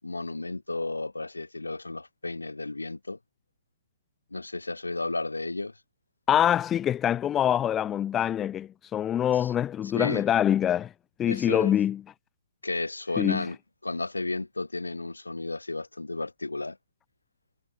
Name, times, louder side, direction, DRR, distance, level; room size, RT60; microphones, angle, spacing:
voice 1, 0.0-3.2 4.3-5.8 9.3-9.5 9.9-10.3 11.3-11.7 12.6-13.6 13.8-16.8, left 2 dB, 75° left, 7.3 m, -33 dB
voice 2, 6.3-10.9 11.2-12.0 13.2-13.4, left 10 dB, 15° left, 0.8 m, -25 dB
figure-of-eight pair, 130°, 0 cm